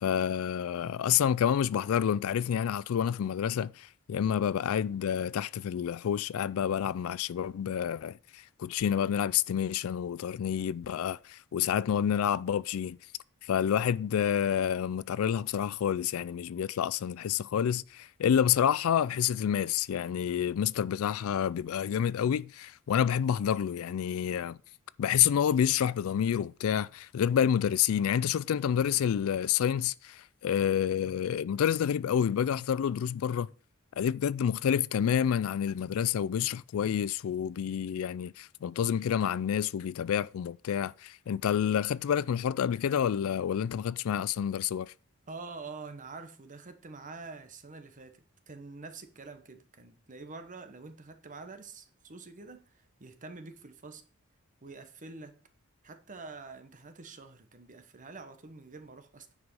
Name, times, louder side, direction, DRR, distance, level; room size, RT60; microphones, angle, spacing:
voice 1, 0.0-13.0 13.4-24.6 25.0-33.5 34.0-44.9, left 8 dB, 70° left, 0.3 m, -28 dB
voice 2, 45.3-54.0 54.6-55.4 55.8-59.3, right 3 dB, 35° right, 1.0 m, -46 dB
9.5 x 5.0 x 5.3 m
head